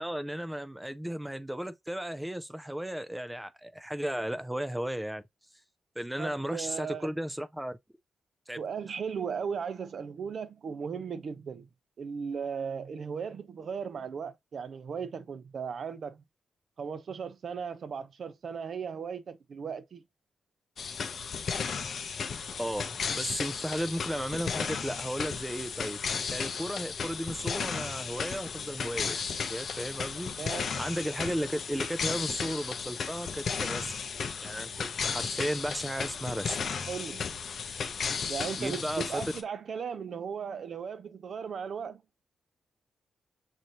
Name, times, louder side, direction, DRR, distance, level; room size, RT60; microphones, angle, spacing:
voice 1, 0.0-5.2 6.0-7.8 8.5-8.6 22.6-30.3 30.8-33.9 34.4-36.6 38.6-39.2, equal, 5° right, 0.4 m, -35 dB
voice 2, 6.2-7.1 8.6-11.7 12.0-16.2 16.8-20.0 30.4-30.8 36.9-37.3 38.3-42.0, right 6 dB, 55° right, 0.6 m, -37 dB
sound 1, 20.8-39.4, left 6 dB, 50° left, 0.6 m, -34 dB
6.5 x 2.7 x 2.9 m
wide cardioid pair, 155°, 0 cm